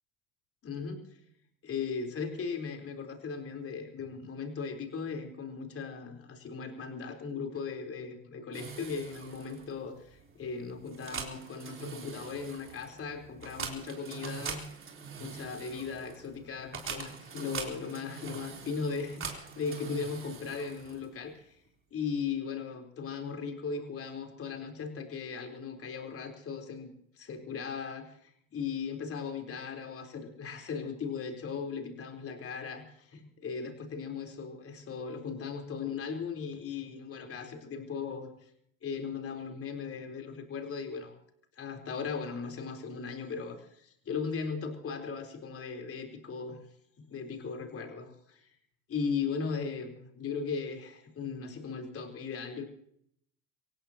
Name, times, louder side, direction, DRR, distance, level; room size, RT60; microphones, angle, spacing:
voice 1, 0.6-1.1 1.6-14.7 15.2-21.6 21.9-26.9 27.2-38.3 38.8-41.2 41.6-46.6 47.0-48.5 48.9-52.6, left 5 dB, 35° left, 4 dB, 4.1 m, -37 dB
sound 1, 8.5-21.2, right 6 dB, 30° right, 3.8 m, -43 dB
25.5 x 17.0 x 3.0 m, 0.68 s
hypercardioid pair, 100°, 42 cm